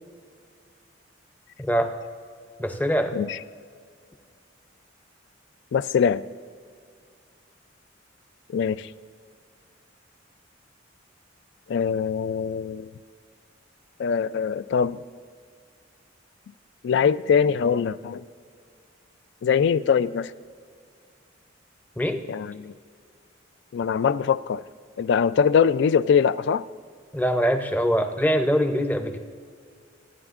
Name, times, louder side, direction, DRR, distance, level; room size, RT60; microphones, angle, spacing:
voice 1, 1.6-1.9 2.6-3.2 22.0-22.2 27.1-29.2, equal, 10° left, 7 dB, 0.6 m, -23 dB
voice 2, 5.7-6.2 8.5-8.9 11.7-12.9 14.0-15.0 16.8-18.2 19.4-20.3 22.3-22.7 23.7-24.6 25.0-26.6, left 7 dB, 60° left, 16 dB, 0.3 m, -22 dB
26.0 x 9.5 x 2.5 m, 2.1 s
head